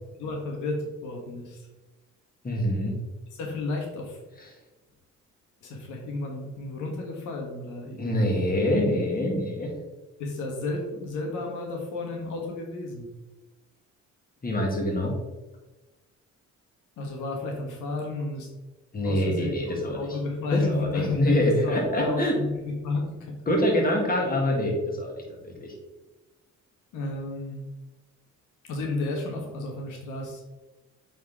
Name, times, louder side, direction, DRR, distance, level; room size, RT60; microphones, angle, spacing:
voice 1, 0.2-1.7 3.3-4.2 5.6-8.5 10.2-13.1 17.0-18.5 19.0-19.5 19.8-23.3 26.9-27.6 28.6-30.4, left 3 dB, 90° left, 1 dB, 1.5 m, -32 dB
voice 2, 2.4-3.0 4.4-4.5 8.0-9.7 14.4-15.2 18.9-20.0 20.5-22.3 23.5-25.7, left 1 dB, 30° left, -1 dB, 2.2 m, -25 dB
8.1 x 4.5 x 3.6 m, 1.1 s
cardioid pair, 90°, 30 cm